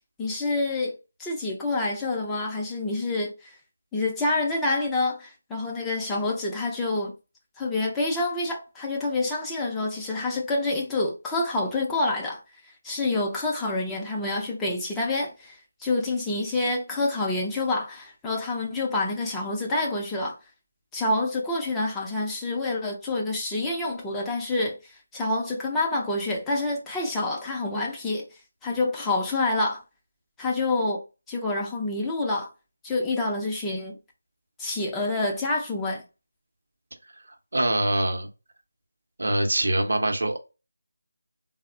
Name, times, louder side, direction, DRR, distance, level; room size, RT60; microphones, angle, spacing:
voice 1, 0.2-0.9 1.2-3.5 3.9-7.1 7.6-12.4 12.8-20.4 20.9-28.2 28.6-29.8 30.4-31.0 31.3-32.5 32.8-34.0 34.6-36.0, left 2 dB, 10° left, 0.5 m, -27 dB
voice 2, 37.5-38.3 39.2-40.4, right 1 dB, 65° right, 0.7 m, -24 dB
4.0 x 2.0 x 2.5 m
figure-of-eight pair, 160°, 0 cm